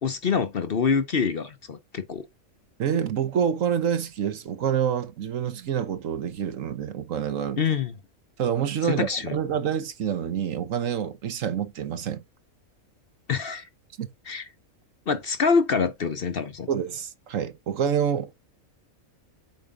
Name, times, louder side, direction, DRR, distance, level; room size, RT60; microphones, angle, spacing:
voice 1, 0.0-2.3 7.6-7.9 8.9-9.4 13.3-13.7 14.3-14.5 15.1-16.7, left 5 dB, 50° left, 0.9 m, -25 dB
voice 2, 2.8-7.6 8.4-12.2 14.0-14.1 16.7-18.3, right 8 dB, 70° right, 1.3 m, -27 dB
7.9 x 5.0 x 3.8 m
omnidirectional pair, 1.5 m